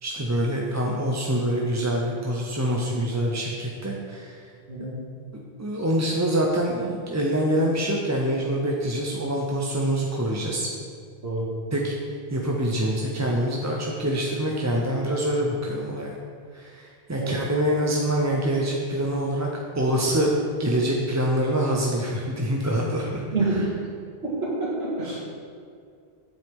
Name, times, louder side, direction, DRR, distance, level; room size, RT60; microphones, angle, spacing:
voice 1, 0.0-4.4 5.3-10.7 11.7-11.9 12.3-16.1 16.5-20.3 20.6-23.7, right 1 dB, 20° right, -2 dB, 0.6 m, -25 dB
voice 2, 4.7-5.0 11.2-11.5 17.2-17.3 23.3-23.5 24.2-25.2, right 3 dB, 90° right, -5 dB, 2.2 m, -27 dB
7.8 x 7.7 x 3.6 m, 2.2 s
omnidirectional pair, 1.0 m